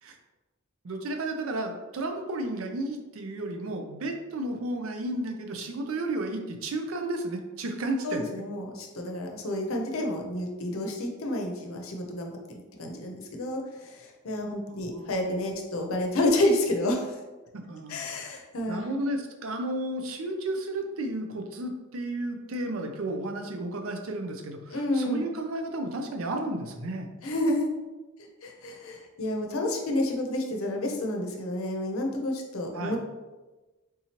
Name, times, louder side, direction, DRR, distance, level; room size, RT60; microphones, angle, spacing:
voice 1, 0.8-8.2 14.7-15.4 17.5-18.4 18.7-27.1 32.7-33.0, right 1 dB, 80° right, 4 dB, 0.5 m, -33 dB
voice 2, 8.0-12.3 12.8-17.2 17.9-18.9 24.7-25.2 27.2-27.7 28.4-33.0, left 1 dB, 80° left, 2 dB, 0.6 m, -29 dB
3.7 x 2.9 x 2.9 m, 1.2 s
head